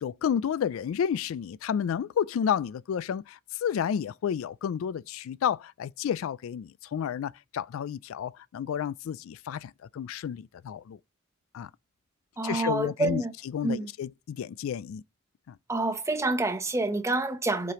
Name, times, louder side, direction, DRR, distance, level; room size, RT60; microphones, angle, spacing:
voice 1, 0.0-11.0 11.5-11.7 12.4-13.2 13.5-15.0 15.5-15.6, left 8 dB, 75° left, 0.3 m, -31 dB
voice 2, 12.4-13.3 13.6-13.9 15.7-17.7, right 2 dB, 15° right, 0.9 m, -28 dB
7.4 x 4.9 x 3.0 m
head